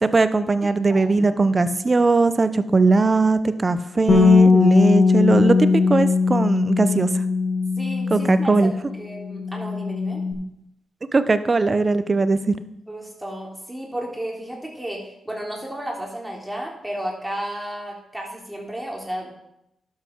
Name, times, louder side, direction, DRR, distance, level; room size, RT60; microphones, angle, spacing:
voice 1, 0.0-7.1 8.1-8.7 11.1-12.5, right 3 dB, 40° right, 12 dB, 0.9 m, -19 dB
voice 2, 0.6-1.1 7.8-8.7 9.0-10.2 12.9-19.3, right 1 dB, 10° right, -2 dB, 3.6 m, -33 dB
Bass guitar, 4.1-8.8 9.0-10.3, left 4 dB, 50° left, 2.8 m, -19 dB
12.0 x 7.7 x 4.6 m, 0.82 s
supercardioid pair, 45°, 0 cm